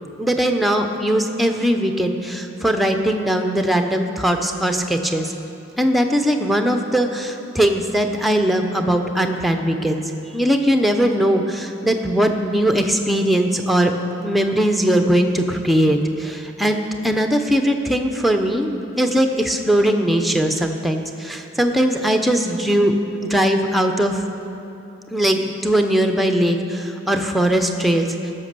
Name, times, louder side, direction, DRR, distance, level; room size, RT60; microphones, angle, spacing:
voice 1, 0.2-5.3 5.8-10.0 10.3-13.9 14.2-24.2 25.1-28.1, equal, ahead, 5 dB, 0.5 m, -20 dB
15.5 x 6.0 x 6.6 m, 2.9 s
head